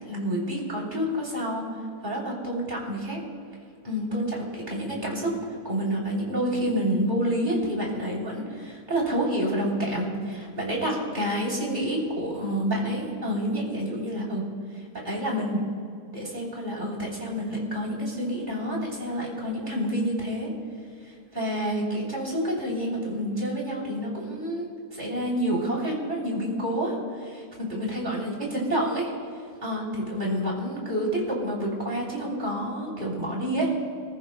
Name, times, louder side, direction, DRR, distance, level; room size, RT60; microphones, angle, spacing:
voice 1, 0.1-1.7 2.0-3.2 3.8-5.4 5.6-14.4 14.8-15.6 16.1-20.5 21.0-29.1 29.6-33.7, equal, 25° right, -3 dB, 3.5 m, -28 dB
26.0 x 14.0 x 2.2 m, 2.3 s
omnidirectional pair, 1.8 m